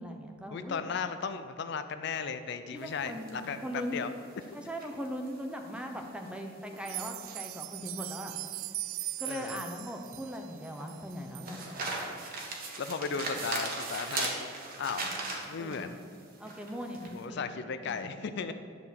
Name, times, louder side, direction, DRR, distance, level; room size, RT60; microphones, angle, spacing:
voice 1, 0.0-0.9 2.7-4.0 4.5-8.3 9.2-11.6 15.6-15.9 16.4-18.1, equal, 5° right, 3 dB, 0.8 m, -40 dB
voice 2, 0.5-4.1 9.3-9.6 12.8-14.5 14.8-15.0 15.5-16.0 17.1-18.5, left 5 dB, 60° left, 10 dB, 0.4 m, -35 dB
sound 1, 2.8-17.2, right 3 dB, 50° right, 1.4 m, -40 dB
sound 2, 6.8-11.5 12.0-12.1 12.5-12.6 13.1-13.2, right 17 dB, 85° right, 0.3 m, -40 dB
11.0 x 3.9 x 7.4 m, 2.4 s
head